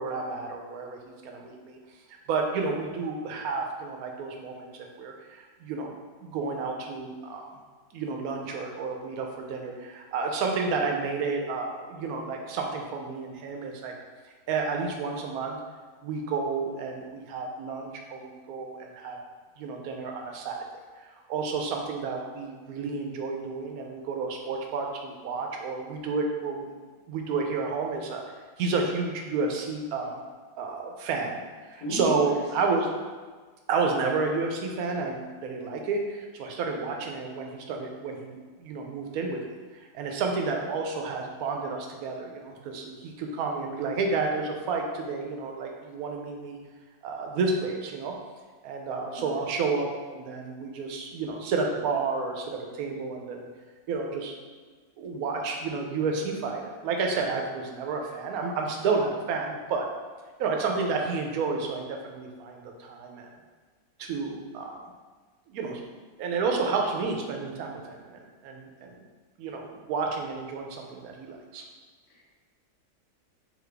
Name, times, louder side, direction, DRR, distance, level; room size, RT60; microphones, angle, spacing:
voice 1, 0.0-1.8 2.3-5.9 6.2-7.5 7.9-13.9 14.5-15.6 16.0-19.2 19.6-20.6 21.0-26.7 27.1-30.2 30.6-32.9 33.7-38.3 38.6-39.4 39.7-46.6 47.0-48.1 48.6-53.5 53.9-54.3 55.0-59.9 60.4-63.3 64.0-64.8 65.5-65.8 66.2-68.9 69.4-71.6, right 4 dB, 70° right, 2 dB, 1.0 m, -31 dB
voice 2, 31.8-32.6 48.9-49.4 72.1-72.2, equal, 80° left, -4 dB, 1.5 m, -36 dB
3.9 x 3.0 x 3.3 m, 1.5 s
omnidirectional pair, 1.8 m